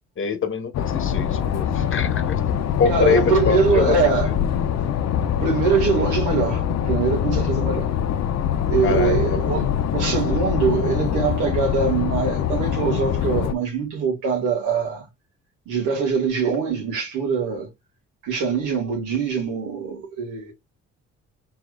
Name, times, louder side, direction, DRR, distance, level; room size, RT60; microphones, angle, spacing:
voice 1, 0.2-4.1 8.8-9.7, left 6 dB, 40° left, 1.0 m, -25 dB
sound 1, 0.7-13.5, left 9 dB, 60° left, 0.6 m, -23 dB
voice 2, 2.9-4.3 5.4-7.9 8.7-15.1 15.7-17.7 18.2-20.5, right 5 dB, 85° right, 2.3 m, -23 dB
4.8 x 3.9 x 2.4 m
cardioid pair, 90°, 30 cm